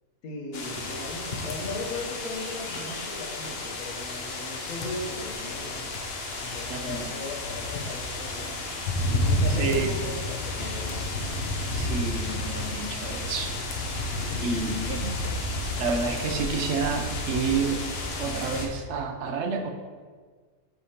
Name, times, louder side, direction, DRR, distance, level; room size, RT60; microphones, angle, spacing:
voice 1, 0.2-6.0 6.4-8.8 9.2-11.1, left 2 dB, 80° left, 1 dB, 1.4 m, -38 dB
sound 1, 0.5-18.7, left 2 dB, 50° left, 0.9 m, -31 dB
sound 2, 5.9-11.1, equal, 5° left, 1.8 m, -50 dB
voice 2, 6.7-7.1 9.6-9.9 11.7-13.5 14.4-15.2 15.8-17.9 18.2-19.7, right 5 dB, 60° right, 5 dB, 0.8 m, -29 dB
8.5 x 5.0 x 2.8 m, 1.5 s
omnidirectional pair, 1.5 m